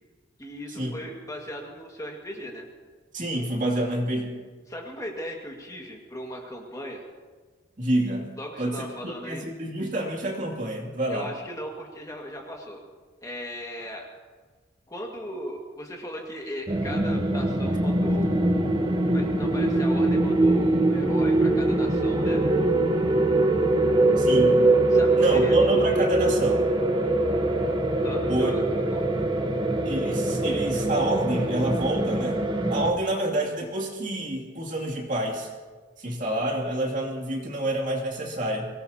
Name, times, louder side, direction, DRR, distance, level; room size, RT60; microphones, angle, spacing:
voice 1, 0.4-2.7 4.7-7.0 8.4-9.5 11.1-12.8 13.2-14.0 14.9-18.5 19.1-22.4 24.9-25.7 28.0-28.6 28.9-29.0, equal, 15° left, 0 dB, 1.9 m, -37 dB
voice 2, 3.1-4.3 7.8-8.3 8.6-8.9 9.2-11.3 24.2-24.6 25.2-26.6 28.3-28.5 29.8-35.5 36.0-38.7, right 1 dB, 40° right, 0 dB, 2.5 m, -28 dB
sound 1, 16.7-32.9, right 2 dB, 25° right, 1.1 m, -23 dB
23.5 x 18.5 x 2.9 m, 1.4 s
head